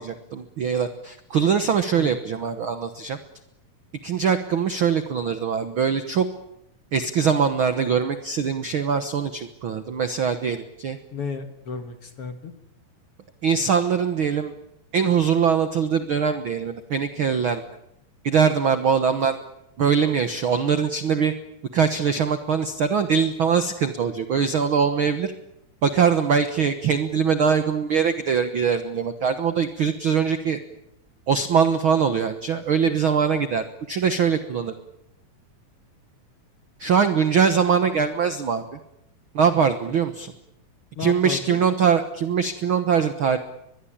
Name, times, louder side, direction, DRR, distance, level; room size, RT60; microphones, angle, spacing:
voice 1, 0.0-3.2 4.0-6.3 6.9-11.0 13.4-14.5 14.9-17.6 18.2-19.4 19.8-21.3 21.7-25.3 25.8-30.6 31.3-34.7 36.8-38.6 39.3-40.3 41.0-43.4, right 6 dB, 65° right, 10 dB, 1.3 m, -22 dB
voice 2, 11.1-12.5 41.0-41.6, left 5 dB, 50° left, 8 dB, 2.1 m, -33 dB
23.5 x 22.0 x 8.8 m, 0.81 s
omnidirectional pair, 4.0 m